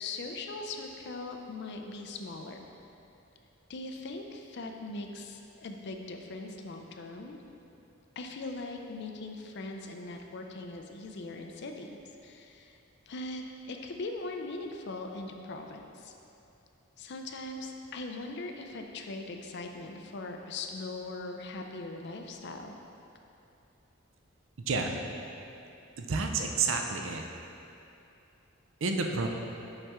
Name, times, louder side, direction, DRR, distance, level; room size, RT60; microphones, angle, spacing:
voice 1, 0.0-2.7 3.7-7.4 8.2-12.8 13.1-16.1 17.0-22.7, left 2 dB, 55° left, 4 dB, 0.5 m, -40 dB
voice 2, 24.7-25.0 26.0-27.2 28.8-29.3, right 4 dB, 70° right, 3 dB, 0.5 m, -30 dB
5.6 x 5.5 x 3.6 m, 2.8 s
head